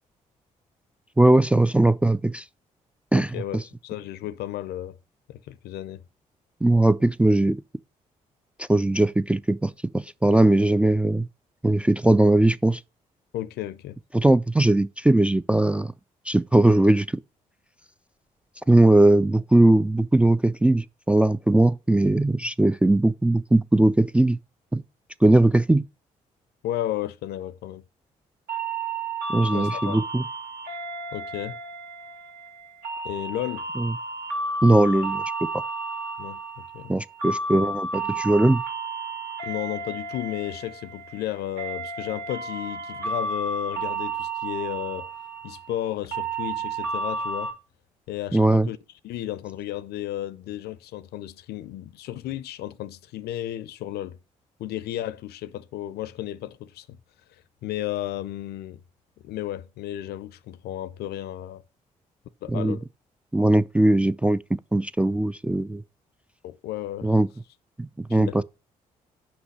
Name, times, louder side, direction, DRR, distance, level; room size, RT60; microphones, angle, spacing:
voice 1, 1.2-2.4 3.1-3.6 6.6-7.6 8.6-11.3 11.6-12.8 14.1-15.9 16.3-17.2 18.7-24.4 24.7-24.8 25.2-25.8 29.3-30.2 33.8-34.0 34.6-35.2 36.9-38.6 48.3-48.7 62.5-62.8 63.3-65.8 67.0-67.3 67.8-68.4, right 1 dB, 5° right, 0.3 m, -20 dB
voice 2, 3.1-5.0 5.3-6.0 13.3-14.0 26.6-27.8 29.5-30.0 31.1-31.6 33.0-33.6 36.2-36.9 39.4-45.1 45.4-47.5 48.1-48.8 49.0-54.2 54.6-57.0 57.6-58.8 59.2-61.6 62.4-62.8 66.4-67.1 68.2-68.4, left 13 dB, 65° left, 0.5 m, -33 dB
sound 1, 28.5-47.5, right 3 dB, 60° right, 2.3 m, -32 dB
6.0 x 5.4 x 6.4 m
hypercardioid pair, 45°, 18 cm